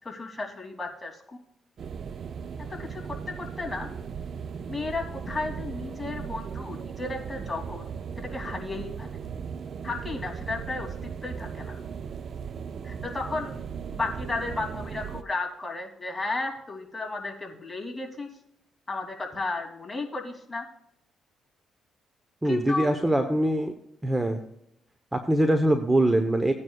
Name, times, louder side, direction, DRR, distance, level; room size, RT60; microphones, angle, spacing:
voice 1, 0.0-1.4 2.9-3.9 4.7-7.8 8.3-9.1 9.8-11.8 12.8-13.6 13.9-18.3 18.9-20.6 22.4-22.9, left 3 dB, 15° left, 0 dB, 2.8 m, -34 dB
sound 1, 1.8-15.2, right 7 dB, 55° right, 0.5 m, -37 dB
voice 2, 22.4-23.7 24.0-24.4 25.1-26.5, right 1 dB, 10° right, 6 dB, 1.0 m, -23 dB
17.0 x 9.5 x 2.4 m, 0.77 s
cardioid pair, 90°, 0 cm